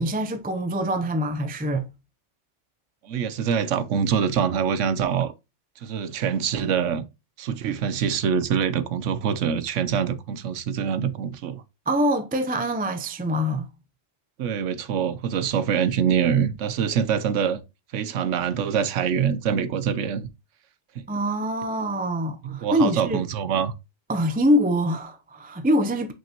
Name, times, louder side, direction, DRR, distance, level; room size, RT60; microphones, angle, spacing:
voice 1, 0.0-1.9 11.9-13.7 21.1-23.2 24.1-26.1, equal, 15° right, 0.3 m, -24 dB
voice 2, 3.0-5.3 5.8-7.0 7.4-11.6 14.4-17.6 17.9-20.3 21.0-21.1 22.4-23.7, right 7 dB, 85° right, 1.1 m, -24 dB
6.0 x 5.6 x 2.9 m
omnidirectional pair, 1.2 m